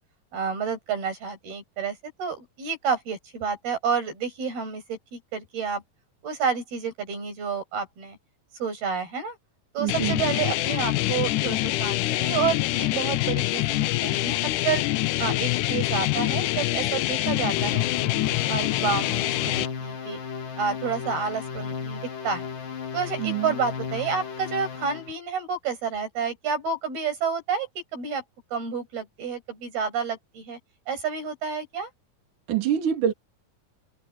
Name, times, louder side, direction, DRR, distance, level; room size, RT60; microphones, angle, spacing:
voice 1, 0.3-5.8 6.2-8.2 8.6-9.4 9.7-14.8 15.2-18.1 18.5-20.2 20.6-22.5 22.9-28.2 28.5-30.6 30.9-31.9, right 6 dB, 85° right, 9.0 m, -29 dB
voice 2, 9.8-10.2 23.2-23.5 32.5-33.1, right 9 dB, 60° right, 4.1 m, -25 dB
sound 1, 9.9-19.7, left 17 dB, 85° left, 1.8 m, -25 dB
sound 2, 17.6-25.1, left 6 dB, 65° left, 4.7 m, -35 dB
omnidirectional pair, 4.3 m